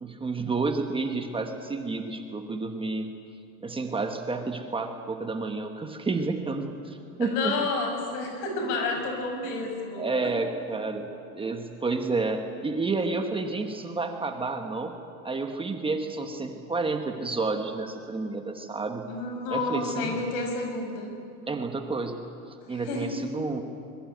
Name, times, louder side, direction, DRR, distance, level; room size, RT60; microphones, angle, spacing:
voice 1, 0.0-3.1 3.6-7.5 10.0-11.1 11.3-14.9 15.2-19.0 19.5-20.2 21.5-22.2 22.5-23.6, right 3 dB, 10° right, 4 dB, 1.1 m, -30 dB
voice 2, 7.2-10.0 19.1-21.1 22.7-23.1, left 3 dB, 75° left, 4 dB, 6.6 m, -30 dB
24.5 x 22.0 x 9.3 m, 2.6 s
cardioid pair, 170°, 45 cm